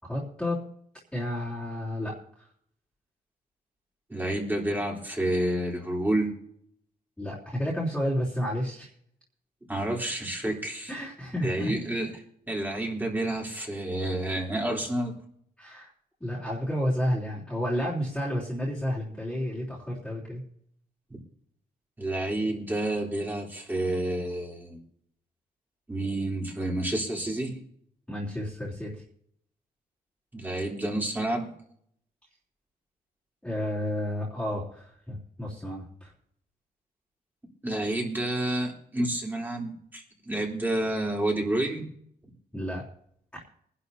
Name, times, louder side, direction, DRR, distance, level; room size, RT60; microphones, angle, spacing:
voice 1, 0.0-0.6 1.1-2.1 7.2-8.9 10.9-11.7 15.6-15.9 16.2-20.4 28.1-28.9 33.4-36.1 42.5-42.8 43.3-43.4, equal, 5° left, -8 dB, 3.4 m, -31 dB
voice 2, 4.1-6.3 9.7-10.9 11.4-12.1 12.5-15.1 21.1-21.2 22.0-24.8 25.9-27.5 30.3-31.5 37.6-41.9, right 1 dB, 10° right, -1 dB, 3.4 m, -29 dB
23.5 x 11.5 x 2.8 m, 0.67 s
wide cardioid pair, 150°, 16 cm